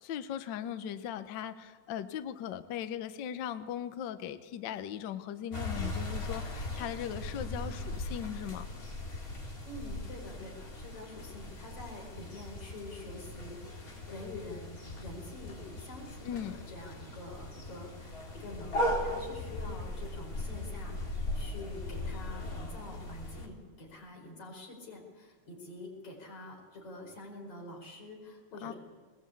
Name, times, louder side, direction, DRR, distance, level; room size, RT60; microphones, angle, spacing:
voice 1, 0.0-8.7 16.2-16.6 28.6-28.7, left 9 dB, 85° left, 10 dB, 1.0 m, -38 dB
sound 1, 5.5-23.5, left 1 dB, 30° left, 3.5 m, -38 dB
voice 2, 9.7-16.4 16.7-28.7, left 2 dB, 50° left, 0 dB, 6.0 m, -47 dB
20.5 x 20.5 x 8.6 m, 1.5 s
omnidirectional pair, 3.3 m